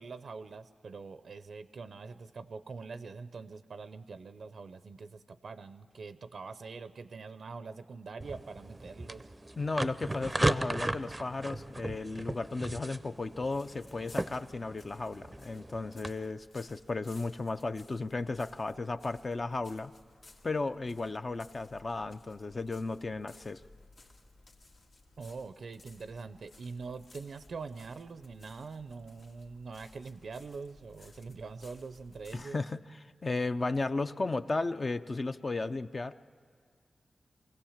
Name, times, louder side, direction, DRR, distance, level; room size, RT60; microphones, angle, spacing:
voice 1, 0.0-9.3 25.2-32.6, right 4 dB, 70° right, 12 dB, 0.5 m, -44 dB
sound 1, 8.2-16.1, right 1 dB, 15° right, 0.5 m, -36 dB
voice 2, 9.6-19.9 20.4-23.6 32.3-36.2, left 3 dB, 40° left, 9 dB, 0.5 m, -35 dB
sound 2, 13.1-32.4, left 2 dB, 70° left, 1.7 m, -59 dB
24.5 x 17.0 x 7.3 m, 2.2 s
wide cardioid pair, 100°, 0 cm